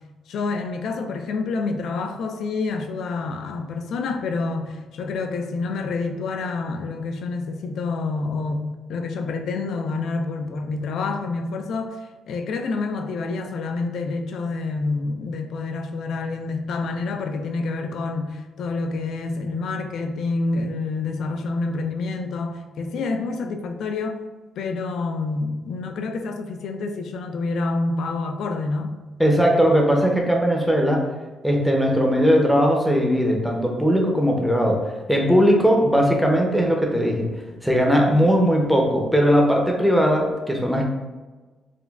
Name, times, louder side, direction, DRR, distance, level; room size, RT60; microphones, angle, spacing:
voice 1, 0.3-12.0 12.3-24.2 24.6-29.0, left 3 dB, 70° left, 5 dB, 0.3 m, -28 dB
voice 2, 29.2-31.0 31.4-37.3 37.6-40.8, equal, ahead, 0 dB, 0.6 m, -19 dB
3.7 x 2.1 x 2.3 m, 1.3 s
cardioid pair, 90°, 0 cm